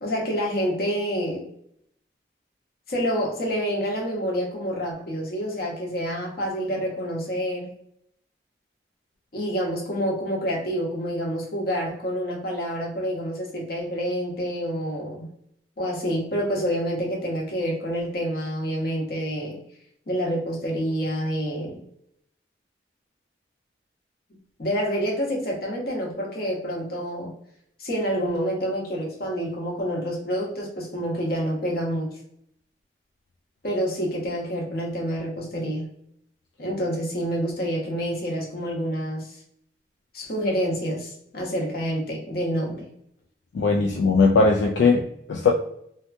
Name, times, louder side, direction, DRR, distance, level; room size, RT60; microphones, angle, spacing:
voice 1, 0.0-1.5 2.9-7.7 9.3-15.3 15.8-19.6 20.1-21.8 24.6-27.3 27.8-32.1 33.6-35.9 36.6-39.4 40.1-42.9, equal, 55° left, -1 dB, 0.8 m, -28 dB
voice 2, 43.5-45.5, left 4 dB, 80° left, 1 dB, 0.3 m, -19 dB
2.7 x 2.3 x 2.4 m, 0.72 s
head